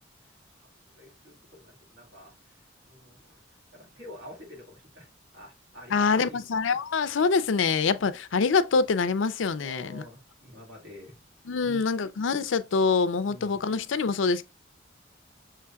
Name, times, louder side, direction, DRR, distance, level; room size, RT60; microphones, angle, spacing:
voice 1, 1.0-2.4 2.8-3.4 3.7-5.1 5.3-6.4 8.0-8.1 9.6-11.2 11.6-11.8 13.2-13.6, left 1 dB, 65° right, 2.4 m, -47 dB
voice 2, 5.9-10.0 11.5-14.4, left 4 dB, 85° left, 0.5 m, -25 dB
6.8 x 3.1 x 2.3 m
head